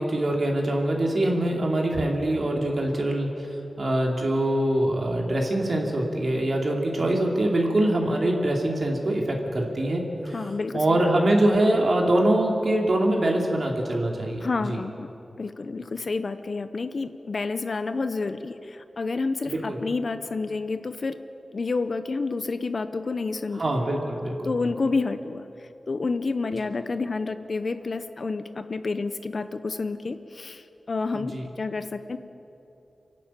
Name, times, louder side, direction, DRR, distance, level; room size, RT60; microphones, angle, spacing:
voice 1, 0.0-3.3 3.8-10.0 10.7-14.8 19.5-19.8 23.6-24.3 31.1-31.4, right 1 dB, 55° right, 0 dB, 2.8 m, -24 dB
voice 2, 10.3-11.0 14.4-15.1 15.4-21.2 21.5-23.6 24.4-32.2, left 3 dB, 55° left, 10 dB, 0.7 m, -29 dB
27.0 x 11.5 x 8.9 m, 3.0 s
wide cardioid pair, 100°, 0 cm